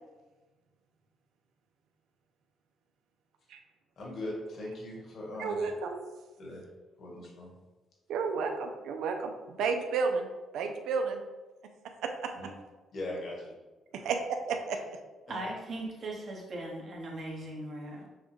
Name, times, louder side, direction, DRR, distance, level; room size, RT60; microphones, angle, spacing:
voice 1, 4.0-5.7 6.4-6.7 7.0-7.5 12.3-12.5 12.9-13.5 14.0-14.2, left 1 dB, 60° left, -3 dB, 1.4 m, -40 dB
voice 2, 5.4-6.0 8.1-10.3 10.5-11.2 12.0-12.3 14.0-14.2 14.5-14.8, right 5 dB, 80° right, 5 dB, 0.5 m, -31 dB
voice 3, 15.3-18.1, right 1 dB, 50° right, -2 dB, 1.2 m, -39 dB
6.2 x 2.3 x 3.1 m, 1.2 s
cardioid pair, 90°, 0 cm